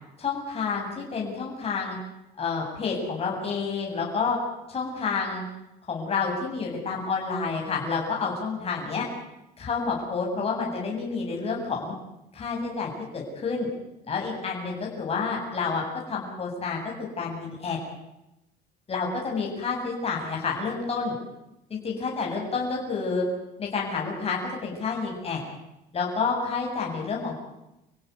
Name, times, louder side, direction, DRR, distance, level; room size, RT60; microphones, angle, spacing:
voice 1, 0.2-2.0 2.4-4.4 4.7-5.4 5.9-9.1 9.6-11.9 12.3-13.7 14.0-17.8 18.9-21.2 21.7-23.3 23.6-25.4 25.9-27.4, left 5 dB, 35° left, -2 dB, 8.0 m, -29 dB
28.5 x 16.5 x 9.8 m, 0.91 s
cardioid pair, 110°, 17 cm